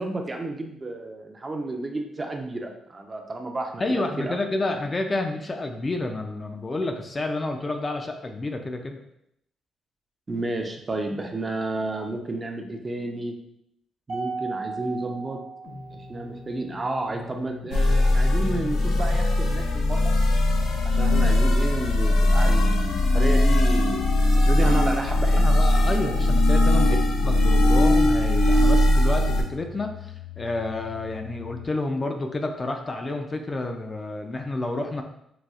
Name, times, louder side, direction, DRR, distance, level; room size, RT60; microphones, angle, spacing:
voice 1, 0.0-3.8 4.2-4.4 10.3-13.4 14.1-15.4 15.9-20.1 20.8-25.6, right 2 dB, 30° right, 3 dB, 0.5 m, -31 dB
voice 2, 3.8-9.0 25.4-35.0, left 2 dB, 30° left, 4 dB, 0.4 m, -29 dB
Mallet percussion, 14.1-16.5, right 4 dB, 65° right, 0.8 m, -36 dB
sound 1, 15.6-31.7, left 6 dB, 50° left, 0.7 m, -41 dB
sound 2, 17.7-29.4, left 1 dB, 85° left, 0.5 m, -20 dB
4.0 x 2.3 x 2.3 m, 0.77 s
cardioid pair, 90°, 0 cm